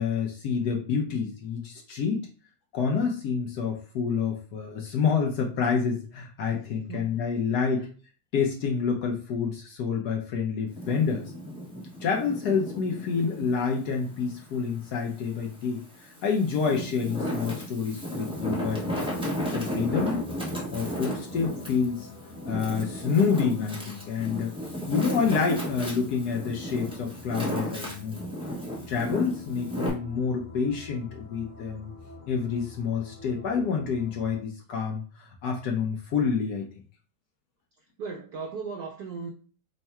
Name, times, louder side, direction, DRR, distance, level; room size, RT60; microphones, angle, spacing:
voice 1, 0.0-2.3 2.7-7.9 8.3-11.3 12.0-20.2 20.7-22.1 22.5-24.5 24.9-28.2 28.9-31.9 32.3-36.7, left 6 dB, 65° left, 1.0 m, -28 dB
voice 2, 6.5-7.2 7.8-7.9 38.0-39.3, right 5 dB, 80° right, 0.8 m, -38 dB
Wind, 10.7-13.5 14.0-15.3 15.9-29.9, equal, 10° right, 0.3 m, -34 dB
sound 1, 18.3-34.4, left 2 dB, 35° left, 1.1 m, -48 dB
3.6 x 2.2 x 4.2 m
omnidirectional pair, 2.1 m